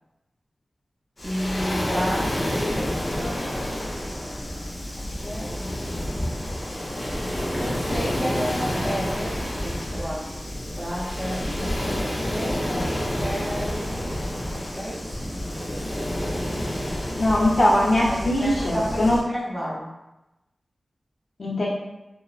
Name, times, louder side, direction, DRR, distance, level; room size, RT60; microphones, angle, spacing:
Waves surf, 1.2-19.2, equal, 35° left, 0.5 m, -29 dB
voice 1, 1.2-3.5 5.0-6.0 7.5-9.3 9.6-12.0 12.3-15.3 18.1-19.9, equal, 15° right, -6 dB, 0.6 m, -32 dB
voice 2, 17.1-19.2 21.4-21.7, left 1 dB, 65° left, -6 dB, 0.7 m, -21 dB
2.9 x 2.0 x 2.3 m, 0.98 s
wide cardioid pair, 65°, 0 cm